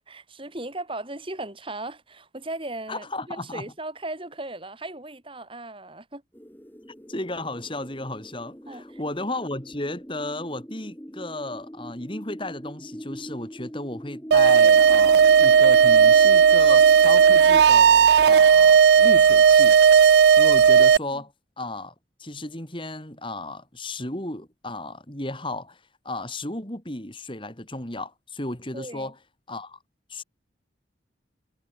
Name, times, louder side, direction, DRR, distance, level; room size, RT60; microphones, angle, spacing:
voice 1, 0.0-6.2 8.7-9.0 21.1-21.2 28.7-29.1, right 2 dB, 25° right, 3.3 m, -37 dB
voice 2, 2.9-3.7 7.1-19.8 20.4-21.3 21.6-21.9 22.2-29.2 29.5-29.8 30.1-30.2, left 2 dB, 25° left, 3.7 m, -34 dB
sound 1, 6.3-17.6, equal, 10° left, 2.8 m, -42 dB
sound 2, 14.3-21.0, right 7 dB, 60° right, 0.3 m, -15 dB
head